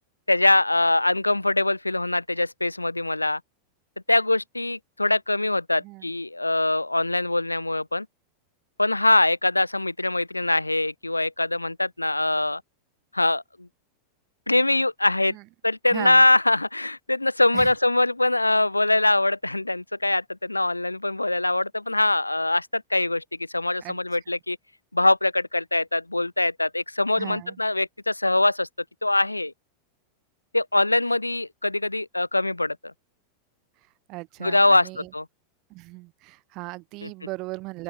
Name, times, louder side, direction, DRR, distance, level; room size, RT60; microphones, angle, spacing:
voice 1, 0.3-3.4 4.1-8.1 8.8-12.6 13.1-13.7 14.5-15.4 15.6-23.2 23.5-24.6 24.9-28.7 29.0-29.5 30.5-32.8 34.4-35.3 37.0-37.1, left 2 dB, 85° left, 0.3 m, -23 dB
voice 2, 5.8-6.1 15.3-15.4 15.9-16.2 17.5-17.7 23.8-24.0 27.2-27.6 33.8-35.1 35.7-37.8, right 23 dB, 40° right, 5.7 m, -37 dB
open air
figure-of-eight pair, 90°, 0 cm